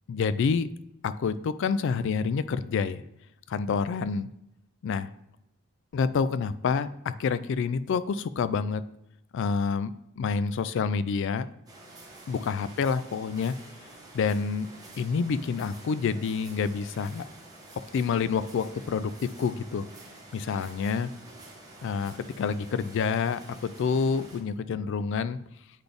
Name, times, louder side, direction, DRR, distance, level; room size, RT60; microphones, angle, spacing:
voice 1, 0.1-0.7 1.0-3.0 3.5-4.3 4.8-5.1 5.9-6.9 7.2-8.8 9.3-11.5 12.3-13.5 14.1-14.7 15.0-17.2 17.9-19.1 19.4-19.8 20.3-21.1 21.8-25.4, left 5 dB, 55° left, 14 dB, 0.3 m, -28 dB
sound 1, 11.7-24.4, right 2 dB, 15° right, 1.1 m, -49 dB
8.1 x 4.0 x 3.4 m, 0.84 s
head